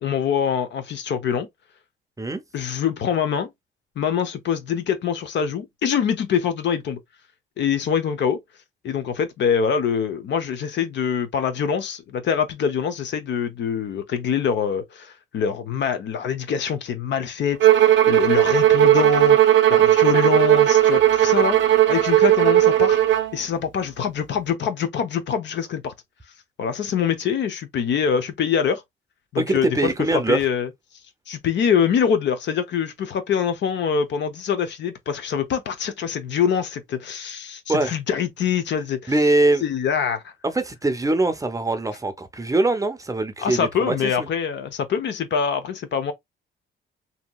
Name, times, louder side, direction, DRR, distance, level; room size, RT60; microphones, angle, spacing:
voice 1, 0.0-1.5 2.5-3.5 4.0-7.0 7.6-8.4 8.8-21.6 21.9-23.0 23.3-25.9 26.6-28.8 29.3-29.9 30.3-30.7 31.3-39.1 39.6-40.2 43.4-46.1, left 7 dB, 65° left, 0.7 m, -24 dB
Bowed string instrument, 17.6-23.3, right 12 dB, 70° right, 0.5 m, -16 dB
voice 2, 29.4-30.4 37.7-37.9 39.1-39.6 40.4-44.3, right 2 dB, 15° right, 0.6 m, -22 dB
2.8 x 2.7 x 2.2 m
cardioid pair, 90°, 20 cm